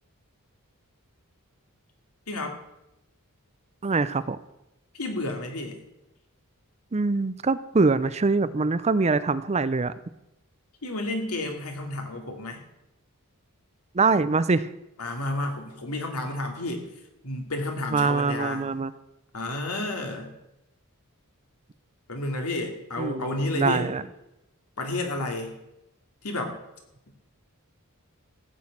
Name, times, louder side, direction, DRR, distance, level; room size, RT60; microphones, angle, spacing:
voice 1, 2.3-2.6 4.9-5.8 10.8-12.6 15.0-16.9 17.2-18.7 19.3-20.3 22.1-23.9 24.8-25.6 26.2-26.6, left 2 dB, 75° left, 3 dB, 2.6 m, -31 dB
voice 2, 3.8-4.4 6.9-9.9 13.9-14.7 17.9-18.9 23.0-24.0, right 4 dB, 30° right, 15 dB, 0.5 m, -24 dB
15.0 x 6.3 x 8.7 m, 0.89 s
head